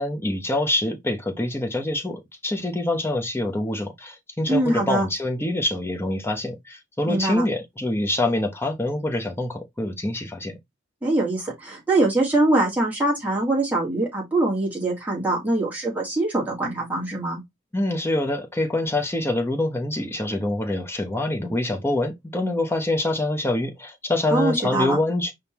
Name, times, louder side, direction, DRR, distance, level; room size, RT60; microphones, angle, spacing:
voice 1, 0.0-10.5 17.7-25.3, left 1 dB, 10° left, 0.8 m, -25 dB
voice 2, 4.5-5.0 7.1-7.4 11.0-17.4 24.3-25.0, right 2 dB, 10° right, 1.7 m, -23 dB
5.1 x 3.5 x 2.9 m
head